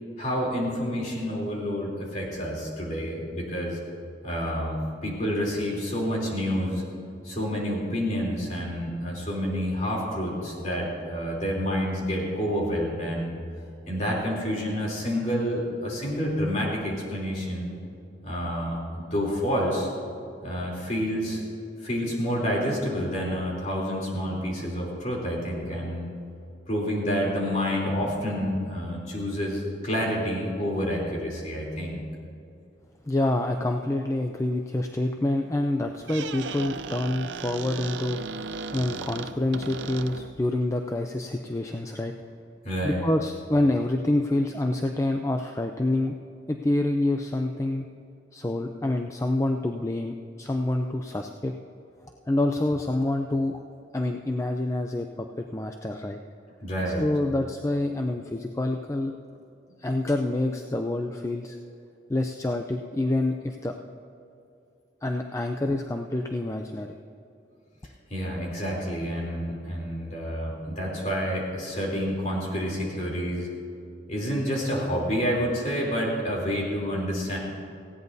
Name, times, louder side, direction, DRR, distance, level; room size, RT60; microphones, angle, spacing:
voice 1, 0.2-3.8 4.2-6.8 7.2-13.4 13.9-17.7 18.2-19.9 20.4-21.4 21.8-26.1 26.7-32.0 42.6-43.0 56.6-57.0 68.1-73.5 74.1-77.4, equal, 40° left, -3 dB, 3.3 m, -28 dB
voice 2, 33.1-38.2 38.7-42.1 42.8-46.2 46.5-47.9 48.3-51.5 52.3-53.6 53.9-56.2 57.0-59.2 59.8-61.6 62.1-63.7 65.0-67.0, left 1 dB, 15° left, 4 dB, 0.4 m, -27 dB
Squeak, 35.9-40.5, right 5 dB, 80° right, 0.6 m, -36 dB
18.5 x 16.0 x 2.7 m, 2.6 s
head